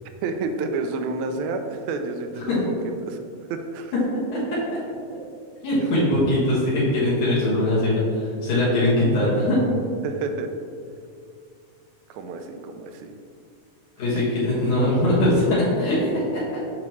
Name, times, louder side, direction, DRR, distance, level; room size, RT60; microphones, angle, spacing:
voice 1, 0.2-2.5 2.8-3.2 3.5-3.9 10.0-10.5 12.1-13.2 14.2-14.3, right 3 dB, 80° right, 6 dB, 1.9 m, -29 dB
voice 2, 5.6-9.6 14.0-16.1 16.3-16.4, left 1 dB, 75° left, -9 dB, 3.0 m, -21 dB
7.4 x 6.0 x 3.1 m, 2.3 s
omnidirectional pair, 3.5 m